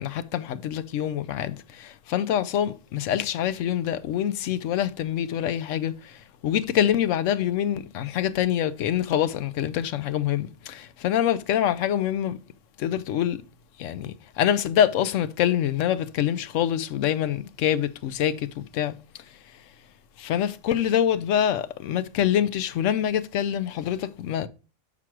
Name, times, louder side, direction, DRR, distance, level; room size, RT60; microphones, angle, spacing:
voice 1, 0.0-6.2 6.4-12.4 12.8-13.4 13.8-19.0 20.2-24.5, left 10 dB, 70° left, 0.9 m, -25 dB
6.1 x 6.0 x 4.5 m
omnidirectional pair, 1.5 m